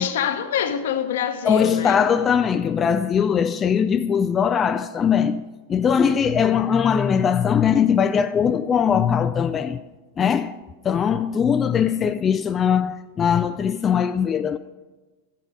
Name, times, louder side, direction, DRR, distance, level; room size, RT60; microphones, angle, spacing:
voice 1, 0.0-2.0, left 8 dB, 55° left, 0.9 m, -25 dB
voice 2, 1.4-9.8 10.2-10.5 10.8-14.6, left 7 dB, 20° left, 0.3 m, -20 dB
11.0 x 7.4 x 5.3 m
figure-of-eight pair, 90°, 0 cm